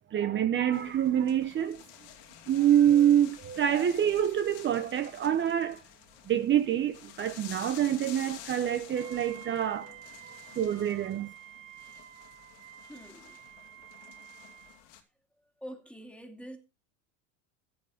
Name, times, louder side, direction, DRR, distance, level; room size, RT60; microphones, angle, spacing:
voice 1, 0.1-1.8 2.5-5.8 6.3-11.3, right 10 dB, 30° right, 1.0 m, -26 dB
sound 1, 0.7-15.0, left 11 dB, 75° left, 2.6 m, -51 dB
Wind instrument woodwind instrument, 8.9-14.9, right 13 dB, 85° right, 2.3 m, -50 dB
voice 2, 10.2-10.6 12.9-13.4 15.6-16.6, equal, 5° left, 2.6 m, -46 dB
15.0 x 9.2 x 3.6 m
supercardioid pair, 120°, 36 cm